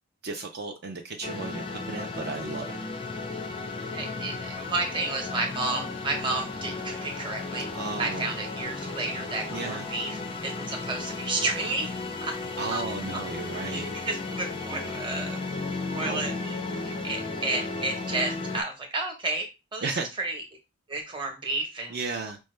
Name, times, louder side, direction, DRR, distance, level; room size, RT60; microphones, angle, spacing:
voice 1, 0.2-2.7 7.7-8.3 9.5-9.9 12.6-13.9 16.0-16.3 19.8-20.1 21.9-22.4, right 4 dB, 50° right, 0.4 m, -34 dB
sound 1, 1.2-18.6, left 3 dB, 25° left, 0.4 m, -34 dB
voice 2, 3.9-7.7 8.0-10.2 10.4-11.9 12.2-12.3 12.7-12.8 13.6-15.4 15.9-20.4 20.9-22.0, right 2 dB, 20° right, 0.9 m, -32 dB
5.3 x 2.1 x 3.2 m
head